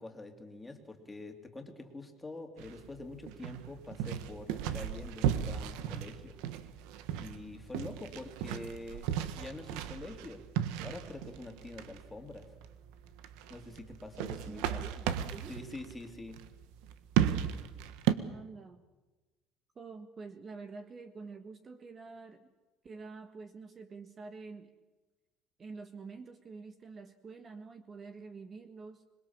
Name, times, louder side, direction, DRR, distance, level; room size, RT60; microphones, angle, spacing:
voice 1, 0.0-6.4 7.2-10.4 10.8-12.5 13.5-14.8 15.5-16.4, left 2 dB, 10° left, 4 dB, 3.3 m, -45 dB
sound 1, 2.6-18.1, right 10 dB, 80° right, 1.5 m, -35 dB
voice 2, 14.5-15.5 18.3-18.8 19.7-22.5 22.8-24.7 25.6-29.0, right 4 dB, 30° right, 9 dB, 1.5 m, -47 dB
26.5 x 21.5 x 7.4 m, 1.2 s
cardioid pair, 130°, 0 cm